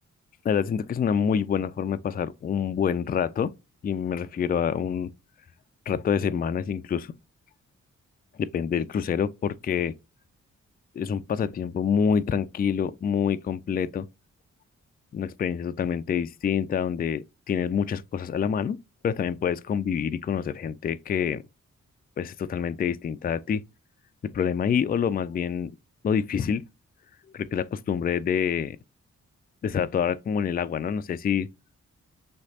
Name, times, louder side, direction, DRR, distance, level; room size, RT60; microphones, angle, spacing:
voice 1, 0.4-3.5 3.8-5.1 5.9-7.2 8.4-9.9 11.0-14.1 15.1-18.8 19.0-21.4 22.2-23.6 24.2-25.7 26.0-26.6 27.3-28.8 29.6-31.5, left 7 dB, 30° left, 0.3 m, -27 dB
5.6 x 3.1 x 2.7 m
supercardioid pair, 45°, 31 cm